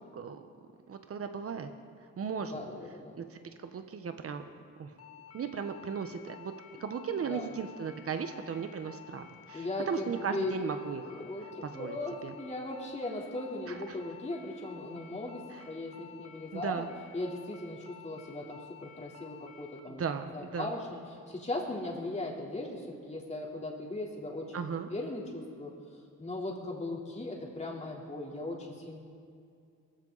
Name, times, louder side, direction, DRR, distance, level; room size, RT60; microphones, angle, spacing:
voice 1, 0.1-0.5 0.9-1.7 2.2-2.6 3.2-4.4 4.8-4.9 5.3-6.5 6.8-11.2 11.6-12.0 12.2-12.3 13.7-14.0 15.5-15.6 16.5-16.9 19.9-20.7 24.5-24.9, right 6 dB, 50° right, 7 dB, 1.2 m, -36 dB
voice 2, 2.5-3.2 7.2-7.5 9.5-10.5 11.1-16.9 17.1-20.0 20.3-20.9 21.3-24.6 24.9-25.7 26.2-29.0, left 2 dB, 25° left, -2 dB, 3.7 m, -38 dB
sound 1, 5.0-19.8, left 8 dB, 55° left, 1.8 m, -52 dB
21.5 x 15.5 x 4.1 m, 2.4 s
cardioid pair, 90°, 30 cm